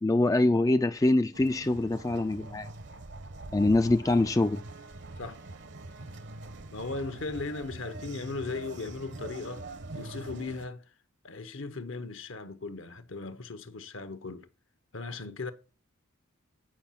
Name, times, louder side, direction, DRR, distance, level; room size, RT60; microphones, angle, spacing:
voice 1, 0.0-2.7 3.5-4.6, left 2 dB, 15° left, 0.3 m, -24 dB
sound 1, 1.3-10.7, right 2 dB, 55° right, 0.9 m, -44 dB
voice 2, 6.7-10.8 11.2-14.5 14.9-15.5, left 3 dB, 65° left, 1.0 m, -37 dB
8.8 x 5.4 x 5.8 m
head